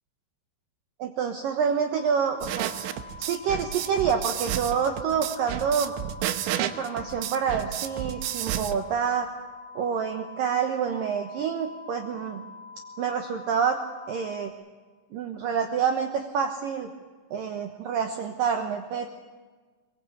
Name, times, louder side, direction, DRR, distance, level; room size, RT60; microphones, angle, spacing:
voice 1, 1.0-2.7 3.2-5.9 6.6-9.3 9.8-12.4 13.0-13.8 14.1-14.5 15.1-16.9 17.3-19.1, right 7 dB, 65° right, 5 dB, 2.4 m, -27 dB
sound 1, 1.9-14.5, left 4 dB, 75° left, 0.7 m, -45 dB
sound 2, 2.4-8.8, right 12 dB, 85° right, 3.3 m, -31 dB
23.0 x 22.0 x 8.2 m, 1.4 s
omnidirectional pair, 5.1 m